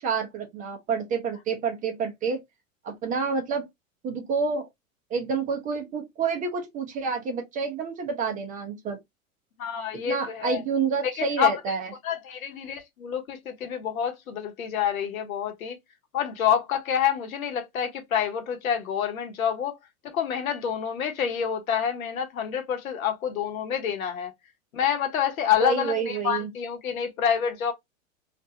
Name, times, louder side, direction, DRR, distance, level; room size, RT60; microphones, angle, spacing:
voice 1, 0.0-2.4 2.8-3.7 4.0-4.7 5.1-9.0 9.9-11.9 25.6-26.5, right 5 dB, 20° right, 0.4 m, -28 dB
voice 2, 9.6-10.6 11.0-11.5 12.0-15.8 16.1-19.8 20.0-24.3 24.7-27.7, left 8 dB, 75° left, 1.0 m, -27 dB
2.5 x 2.4 x 2.7 m
hypercardioid pair, 100°, 42 cm